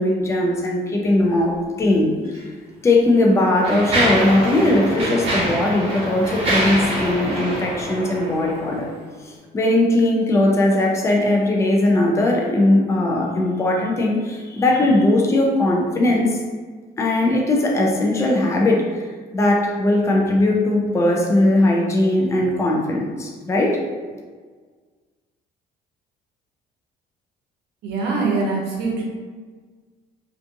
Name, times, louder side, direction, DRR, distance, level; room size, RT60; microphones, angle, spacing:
voice 1, 0.0-2.2 2.8-8.9 9.2-16.4 17.0-19.1 19.3-23.8, left 1 dB, 15° left, -1 dB, 0.4 m, -19 dB
Mechanisms, 2.2-2.4 3.1-8.9, right 1 dB, 35° right, 1.1 m, -25 dB
voice 2, 27.8-29.0, right 3 dB, 80° right, -2 dB, 0.7 m, -23 dB
2.5 x 2.4 x 2.5 m, 1.5 s
cardioid pair, 110°, 17 cm